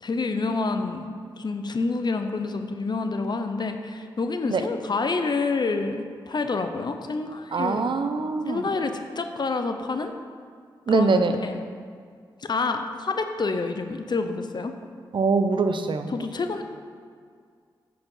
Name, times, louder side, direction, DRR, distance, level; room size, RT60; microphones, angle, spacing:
voice 1, 0.0-7.8 8.5-10.1 10.9-11.6 12.4-14.7 16.1-16.6, left 3 dB, 50° left, 7 dB, 0.6 m, -28 dB
voice 2, 7.5-8.6 10.9-11.4 15.1-16.1, right 4 dB, 60° right, 8 dB, 0.6 m, -23 dB
8.7 x 4.9 x 5.5 m, 2.1 s
cardioid pair, 50°, 9 cm